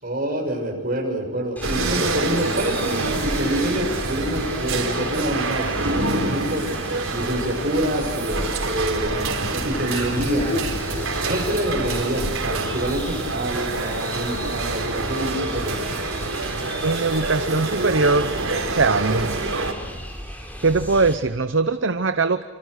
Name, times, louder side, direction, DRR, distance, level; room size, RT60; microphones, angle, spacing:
voice 1, 0.0-6.6 7.1-9.2 9.5-10.7 11.3-15.8, equal, 40° right, 2 dB, 6.5 m, -26 dB
sound 1, 1.6-21.1, equal, 10° left, 4.4 m, -36 dB
sound 2, 1.6-19.7, right 3 dB, 80° right, 4.4 m, -27 dB
sound 3, 9.9-14.5, left 2 dB, 60° left, 4.5 m, -35 dB
voice 2, 16.8-18.3 18.7-19.3 20.6-22.4, right 3 dB, 60° right, 10 dB, 0.8 m, -21 dB
29.5 x 26.5 x 6.6 m, 1.2 s
head